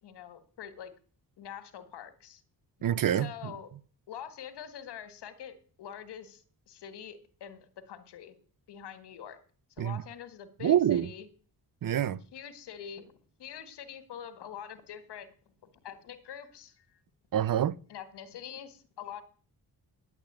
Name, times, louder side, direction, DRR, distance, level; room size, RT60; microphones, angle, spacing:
voice 1, 0.0-0.9 1.4-2.4 3.1-3.7 4.1-8.4 8.7-9.4 9.8-11.3 12.3-15.3 15.8-17.0 17.9-19.2, left 9 dB, 90° left, 1.7 m, -45 dB
voice 2, 2.8-3.5 9.8-10.0 10.6-11.1 11.8-12.2 17.3-17.7, right 10 dB, 55° right, 0.7 m, -26 dB
10.5 x 8.2 x 8.7 m
cardioid pair, 80°, 39 cm